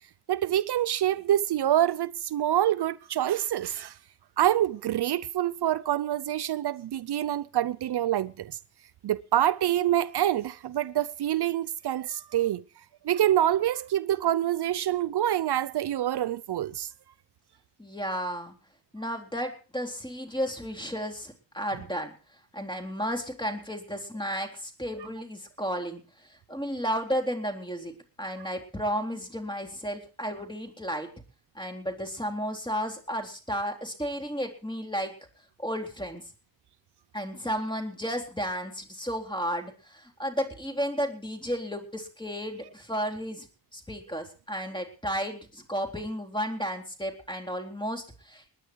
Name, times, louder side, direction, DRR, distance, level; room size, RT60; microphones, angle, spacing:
voice 1, 0.3-4.0 4.4-8.6 9.0-12.6 13.0-16.9 25.0-25.1, right 12 dB, 70° right, 0.6 m, -26 dB
voice 2, 17.8-18.5 18.9-22.1 22.5-26.0 26.5-27.9 28.2-31.1 31.6-35.1 35.6-36.2 37.1-43.5 43.7-48.5, equal, 10° left, 3.8 m, -33 dB
21.0 x 10.0 x 4.6 m
cardioid pair, 60°, 41 cm